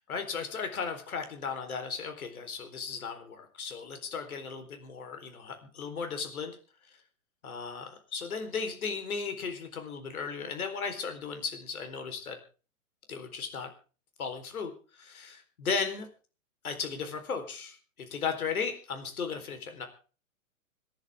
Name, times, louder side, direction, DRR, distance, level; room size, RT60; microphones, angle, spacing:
voice 1, 0.1-6.6 7.4-12.4 13.1-13.7 14.2-14.7 15.0-16.1 16.6-19.9, left 5 dB, 90° left, 6 dB, 4.2 m, -36 dB
27.5 x 10.5 x 3.6 m, 0.38 s
hypercardioid pair, 170°, 42 cm